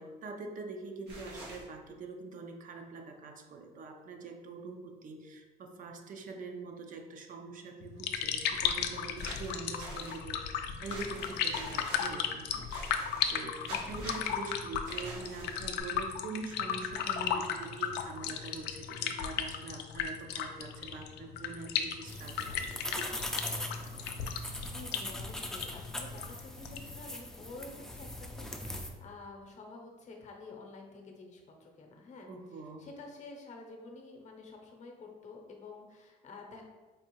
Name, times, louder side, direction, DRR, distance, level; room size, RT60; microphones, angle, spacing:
voice 1, 0.0-23.9 32.3-32.8, right 3 dB, 50° right, 4 dB, 0.5 m, -44 dB
sound 1, 1.1-1.6 9.2-10.2 10.8-12.1 12.7-13.4 13.6-14.4 14.8-15.8, right 1 dB, 90° right, 1.3 m, -45 dB
sound 2, 7.8-27.0, left 8 dB, 80° left, 0.4 m, -35 dB
Filing Acrylic Nails, 22.1-28.9, left 1 dB, 5° left, 0.4 m, -41 dB
voice 2, 24.3-36.6, left 3 dB, 45° left, 1 dB, 0.7 m, -50 dB
4.6 x 2.5 x 3.0 m, 1.3 s
cardioid pair, 110°, 17 cm